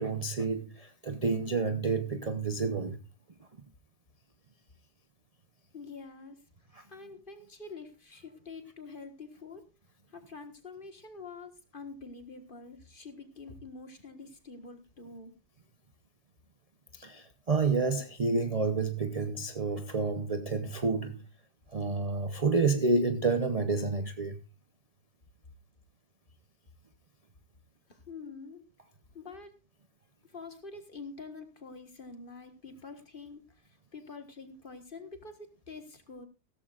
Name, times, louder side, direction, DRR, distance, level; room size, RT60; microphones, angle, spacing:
voice 1, 0.0-3.0 6.8-6.9 16.9-21.2 21.7-24.4, right 4 dB, 35° right, 0.6 m, -29 dB
voice 2, 5.7-6.4 6.9-9.6 10.1-15.3 27.9-28.6 29.1-29.6 30.2-36.3, left 4 dB, 30° left, 1.6 m, -46 dB
16.0 x 13.5 x 2.4 m
omnidirectional pair, 1.8 m